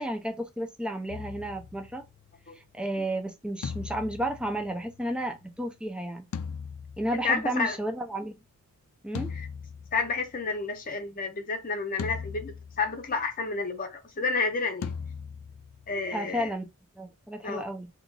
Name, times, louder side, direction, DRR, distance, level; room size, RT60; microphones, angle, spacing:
voice 1, 0.0-2.0 2.5-6.3 7.0-8.4 9.0-9.3 16.1-16.7 17.0-17.9, right 1 dB, 5° right, 0.5 m, -32 dB
sound 1, 1.1-2.4 3.6-5.3 6.3-7.7 9.1-10.5 12.0-13.2 14.8-16.2, left 6 dB, 80° left, 0.4 m, -39 dB
voice 2, 7.1-7.8 9.3-9.5 9.9-14.9 15.9-16.5 17.4-17.7, left 4 dB, 40° left, 0.8 m, -30 dB
2.9 x 2.4 x 3.8 m
head